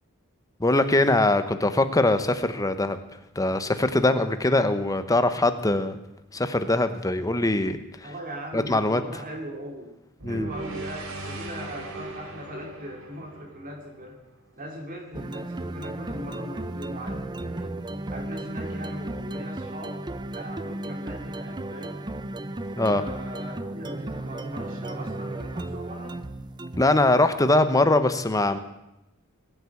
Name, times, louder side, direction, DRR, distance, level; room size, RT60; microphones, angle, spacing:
voice 1, 0.6-3.0 3.4-6.0 6.3-7.8 8.5-9.0 10.2-10.5 22.8-23.0 26.8-28.6, left 2 dB, 15° left, 10 dB, 1.0 m, -22 dB
voice 2, 8.0-10.0 10.3-14.2 14.6-17.8 18.1-20.1 20.3-22.0 22.8-26.2, equal, 40° right, 2 dB, 2.5 m, -39 dB
sound 1, 10.2-14.5, right 2 dB, 85° right, 3.2 m, -38 dB
sound 2, 15.1-27.1, right 1 dB, 20° right, 0.6 m, -34 dB
20.0 x 8.6 x 8.4 m, 0.89 s
head